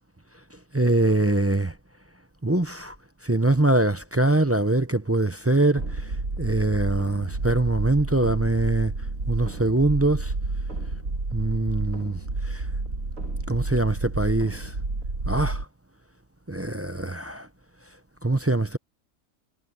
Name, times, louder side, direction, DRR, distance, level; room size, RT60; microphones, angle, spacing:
voice 1, 0.7-1.7 2.4-2.9 3.2-5.8 6.4-8.9 9.3-10.3 11.3-12.2 13.5-14.7 15.3-15.6 16.5-17.5 18.2-18.8, right 2 dB, 15° right, 0.5 m, -23 dB
sound 1, 5.8-15.6, right 2 dB, 70° right, 3.0 m, -30 dB
omnidirectional pair, 1.4 m